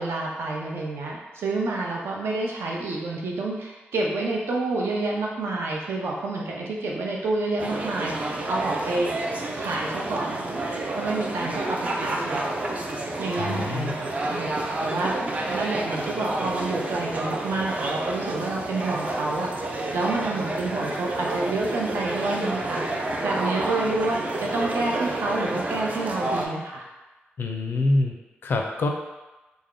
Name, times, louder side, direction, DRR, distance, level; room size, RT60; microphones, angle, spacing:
voice 1, 0.0-9.1 9.5-10.4 10.9-12.5 13.2-26.8, right 2 dB, 85° right, -2 dB, 0.6 m, -29 dB
sound 1, 7.6-26.5, right 2 dB, 35° right, 0.4 m, -29 dB
voice 2, 13.4-13.9 27.4-28.1 28.4-28.9, left 2 dB, 60° left, 3 dB, 0.4 m, -25 dB
3.4 x 2.1 x 3.6 m, 1.1 s
wide cardioid pair, 150°, 4 cm